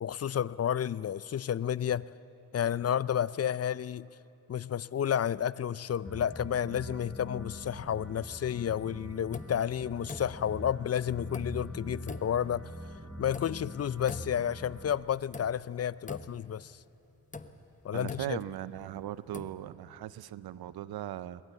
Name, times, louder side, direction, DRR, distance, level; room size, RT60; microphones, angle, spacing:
voice 1, 0.0-2.1 2.5-4.1 4.5-12.7 13.2-16.8 17.8-18.4, left 9 dB, 45° left, 19 dB, 0.5 m, -31 dB
sound 1, 6.0-15.0, equal, ahead, 3.8 m, -44 dB
sound 2, 9.3-9.7 10.1-10.6 11.3-11.7 12.1-12.5 13.3-13.7 14.1-14.6 15.3-15.7 16.1-16.6 17.3-18.8 19.2-19.6, left 3 dB, 20° left, 1.0 m, -44 dB
voice 2, 17.9-21.4, right 12 dB, 90° right, 17 dB, 0.6 m, -39 dB
22.0 x 20.0 x 8.2 m, 3.0 s
cardioid pair, 60°, 36 cm